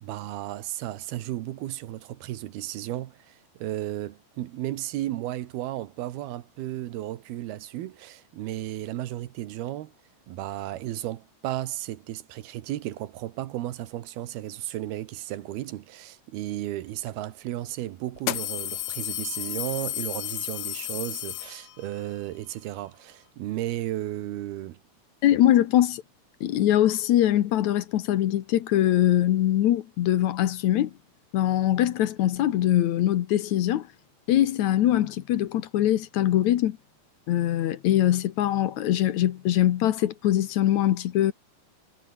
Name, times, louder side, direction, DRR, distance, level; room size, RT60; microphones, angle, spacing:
voice 1, 0.0-9.9 10.3-24.8, right 14 dB, 80° right, 3.2 m, -34 dB
sound 1, 17.1-17.2 18.2-22.0, left 14 dB, 90° left, 1.5 m, -32 dB
voice 2, 25.2-26.0 26.4-30.9 31.3-33.9 34.3-36.8 37.3-41.3, left 12 dB, 65° left, 2.0 m, -22 dB
omnidirectional pair, 4.4 m